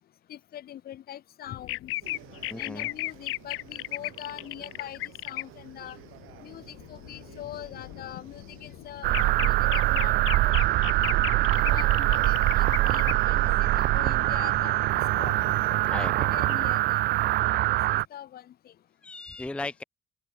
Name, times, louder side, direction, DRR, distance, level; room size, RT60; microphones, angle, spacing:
voice 1, 0.3-1.9 2.6-6.0 6.4-11.0 11.6-14.8 15.2-15.4 16.0-17.0 17.3-17.5 17.9-18.7, left 11 dB, 45° left, 3.6 m, -43 dB
sound 1, 1.5-5.4 5.7-16.6, left 19 dB, 85° left, 1.4 m, -37 dB
sound 2, 2.0-16.6, right 18 dB, 80° right, 2.4 m, -52 dB
voice 2, 2.5-2.9 15.9-16.3 17.4-17.5 19.0-19.8, left 2 dB, 5° left, 0.5 m, -36 dB
sound 3, 9.0-18.0, right 16 dB, 55° right, 0.4 m, -23 dB
open air
cardioid pair, 175°, 21 cm